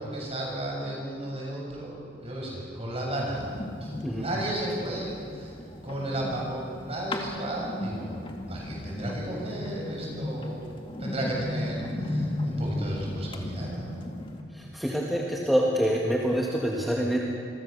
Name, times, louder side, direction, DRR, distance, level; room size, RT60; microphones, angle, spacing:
voice 1, 0.0-3.5 3.8-5.5 5.8-8.1 8.5-14.0, right 1 dB, 30° right, -2 dB, 7.1 m, -33 dB
sound 1, 3.3-14.4, left 1 dB, 25° left, 2.2 m, -36 dB
voice 2, 14.7-17.2, equal, ahead, -3 dB, 1.8 m, -26 dB
28.0 x 22.5 x 6.9 m, 2.4 s
head